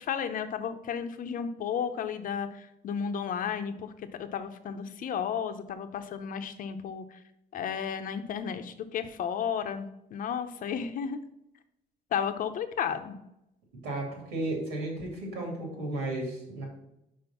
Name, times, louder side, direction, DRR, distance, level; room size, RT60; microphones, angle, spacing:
voice 1, 0.0-3.9 4.2-7.2 7.5-11.2 12.1-13.2, left 7 dB, 55° left, 9 dB, 0.8 m, -33 dB
voice 2, 13.8-16.6, right 2 dB, 90° right, 0 dB, 2.8 m, -34 dB
5.3 x 5.2 x 5.7 m, 0.83 s
cardioid pair, 105°, 17 cm